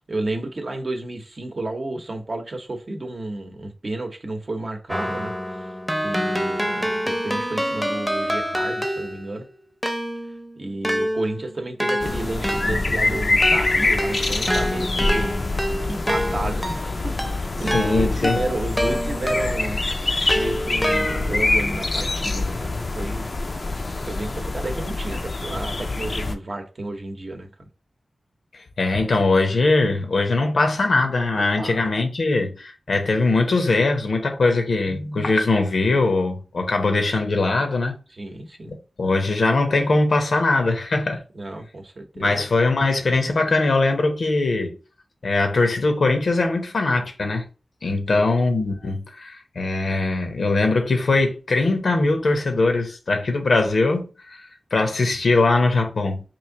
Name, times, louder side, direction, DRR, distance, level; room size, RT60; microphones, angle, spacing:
voice 1, 0.1-5.3 6.0-9.5 10.6-20.0 20.3-23.3 24.0-27.5 31.3-31.8 38.1-38.8 41.3-42.4 48.1-48.2, right 2 dB, 50° right, 0.7 m, -32 dB
Keyboard (musical), 4.9-9.4 9.8-19.7 20.3-21.5, equal, 5° left, 0.6 m, -27 dB
sound 1, 12.0-26.4, left 2 dB, 50° left, 0.4 m, -25 dB
voice 2, 17.7-18.4 28.8-37.9 38.7-41.2 42.2-44.7 45.2-47.5 47.8-54.4 54.7-56.2, left 3 dB, 75° left, 0.7 m, -21 dB
3.1 x 2.6 x 3.7 m
wide cardioid pair, 75°, 0 cm